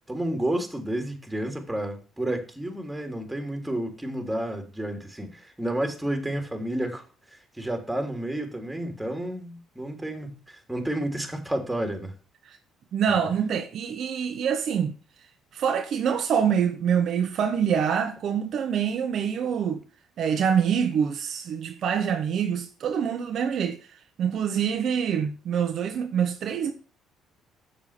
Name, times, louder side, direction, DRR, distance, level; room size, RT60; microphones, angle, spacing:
voice 1, 0.1-7.0 7.3-12.1, right 1 dB, 10° right, 3.6 m, -31 dB
voice 2, 12.9-14.9 15.5-19.8 20.2-23.8 24.2-26.7, right 7 dB, 60° right, 1.1 m, -25 dB
7.5 x 7.1 x 6.7 m
hypercardioid pair, 55°, 0 cm